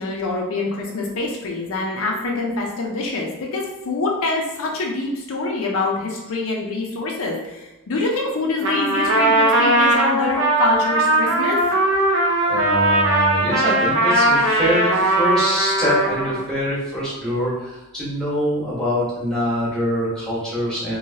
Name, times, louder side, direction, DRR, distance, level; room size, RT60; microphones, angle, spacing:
voice 1, 0.0-11.6, left 3 dB, 70° left, -1 dB, 0.5 m, -25 dB
Trumpet, 8.6-16.5, right 1 dB, 55° right, 0.5 m, -19 dB
voice 2, 12.5-21.0, equal, 5° left, -7 dB, 1.0 m, -24 dB
3.1 x 2.7 x 2.7 m, 0.96 s
head